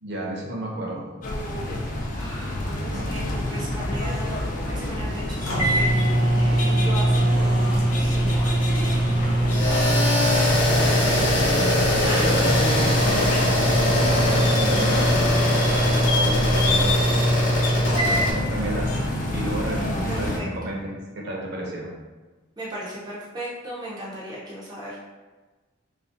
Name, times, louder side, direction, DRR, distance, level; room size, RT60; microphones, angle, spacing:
voice 1, 0.0-1.1 2.9-3.1 12.2-17.2 18.0-18.9 19.3-21.9, right 1 dB, 55° right, -2 dB, 0.7 m, -31 dB
sound 1, 1.2-20.4, left 1 dB, 40° left, 0.4 m, -28 dB
voice 2, 2.1-10.3 10.8-10.9 11.4-12.3 20.1-20.7 22.6-25.1, right 1 dB, 20° right, -7 dB, 0.5 m, -37 dB
sound 2, 5.1-5.2 5.5-18.3, right 1 dB, 85° left, 0.9 m, -23 dB
sound 3, 9.5-18.3, left 1 dB, 60° left, 0.9 m, -23 dB
2.8 x 2.5 x 3.7 m, 1.3 s
head